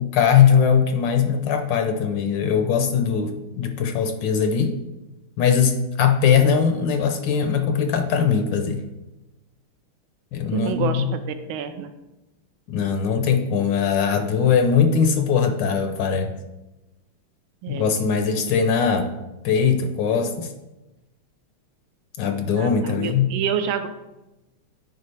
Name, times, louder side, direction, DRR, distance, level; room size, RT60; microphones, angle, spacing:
voice 1, 0.0-4.7 5.4-8.8 10.3-11.1 12.7-16.3 17.7-19.1 19.4-20.5 22.2-23.3, left 7 dB, 70° left, 6 dB, 1.2 m, -20 dB
voice 2, 10.5-11.9 17.6-18.0 22.5-23.9, right 8 dB, 80° right, 8 dB, 1.4 m, -28 dB
9.4 x 4.6 x 3.2 m, 1.0 s
omnidirectional pair, 2.3 m